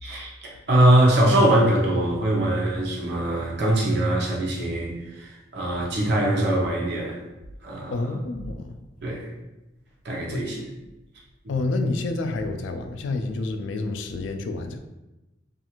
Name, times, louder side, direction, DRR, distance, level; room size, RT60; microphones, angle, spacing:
voice 1, 0.0-7.2 7.6-8.0 9.0-9.3 10.0-10.6, right 1 dB, 60° right, -3 dB, 0.7 m, -22 dB
voice 2, 7.9-8.8 10.3-10.4 11.5-14.8, left 3 dB, 75° left, 6 dB, 0.3 m, -28 dB
2.5 x 2.4 x 2.9 m, 1.0 s
head